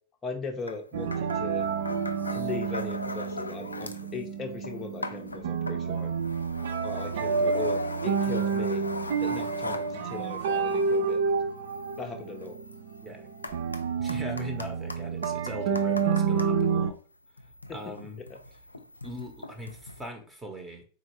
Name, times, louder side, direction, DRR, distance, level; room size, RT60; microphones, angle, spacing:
voice 1, 0.2-1.7 2.3-6.1 6.8-8.9 9.2-11.2 12.0-12.6 17.7-17.9 18.3-18.4, left 4 dB, 20° left, 1 dB, 0.7 m, -38 dB
sound 1, 0.7-0.8 1.1-4.1 4.4-16.5 17.3-20.1, left 2 dB, 80° left, 0.4 m, -40 dB
sound 2, 0.9-16.9, right 5 dB, 55° right, 0.5 m, -29 dB
voice 2, 14.0-17.0 17.7-18.2 19.0-20.9, equal, 10° right, 3 dB, 1.0 m, -40 dB
4.5 x 3.6 x 3.0 m, 0.39 s
figure-of-eight pair, 90°, 0 cm